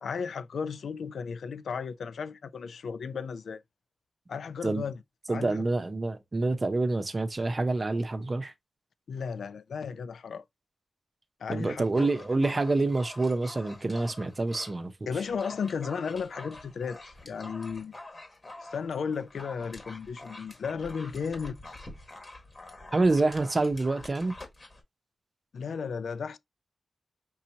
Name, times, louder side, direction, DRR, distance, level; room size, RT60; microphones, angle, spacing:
voice 1, 0.0-3.6 4.3-5.0 5.3-5.6 9.1-10.4 11.4-12.1 12.5-12.6 15.1-17.9 18.6-21.8 25.5-26.4, left 6 dB, 85° left, 0.4 m, -34 dB
voice 2, 5.3-8.5 11.5-14.9 22.9-24.4, right 2 dB, 35° right, 0.8 m, -27 dB
Dog, 11.8-14.8 15.1-24.8, left 2 dB, 35° left, 1.5 m, -46 dB
5.4 x 2.8 x 2.8 m
wide cardioid pair, 90°, 0 cm